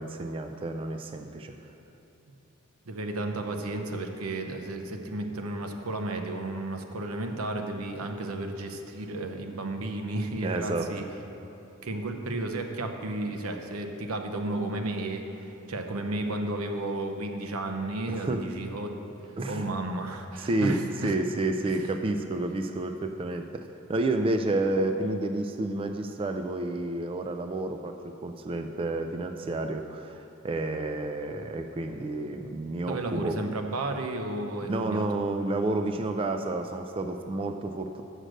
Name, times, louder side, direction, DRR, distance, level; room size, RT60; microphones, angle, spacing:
voice 1, 0.0-1.5 10.4-10.9 18.1-18.5 19.4-19.7 20.4-33.4 34.7-38.0, right 2 dB, 25° right, 6 dB, 0.3 m, -30 dB
voice 2, 2.9-11.0 11.8-19.0 19.5-21.1 32.9-35.1, right 2 dB, 80° right, 5 dB, 0.8 m, -33 dB
7.6 x 6.5 x 6.4 m, 2.9 s
head